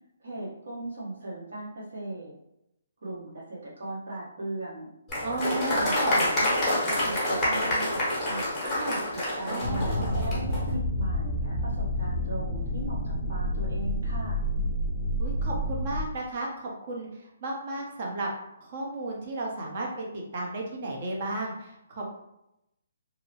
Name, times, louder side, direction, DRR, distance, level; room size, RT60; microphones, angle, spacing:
voice 1, 0.2-2.3 3.0-4.9 5.4-8.5 9.1-14.4, right 2 dB, 70° right, -6 dB, 1.0 m, -38 dB
Applause, 5.1-10.6, left 1 dB, 10° left, 0.8 m, -27 dB
voice 2, 5.2-6.3 8.7-9.0 9.5-10.2 15.2-18.3 18.6-22.2, right 2 dB, 35° right, -1 dB, 0.6 m, -34 dB
sound 1, 9.6-16.0, equal, 35° left, 0.3 m, -29 dB
2.7 x 2.0 x 2.8 m, 0.84 s
hypercardioid pair, 165°, 0 cm